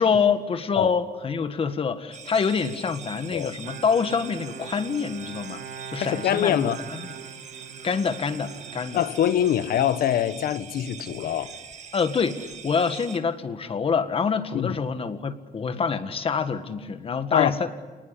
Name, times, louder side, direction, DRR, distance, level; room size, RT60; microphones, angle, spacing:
voice 1, 0.0-5.6 5.9-7.2 7.8-9.0 11.9-17.7, left 5 dB, 40° left, 1.7 m, -26 dB
sound 1, 2.1-13.2, right 7 dB, 50° right, 2.0 m, -43 dB
Bowed string instrument, 3.6-10.3, right 7 dB, 70° right, 1.9 m, -42 dB
voice 2, 6.0-6.8 8.9-11.5 14.5-14.7 17.3-17.5, left 10 dB, 80° left, 1.2 m, -24 dB
29.0 x 19.5 x 10.0 m
cardioid pair, 135°, 15 cm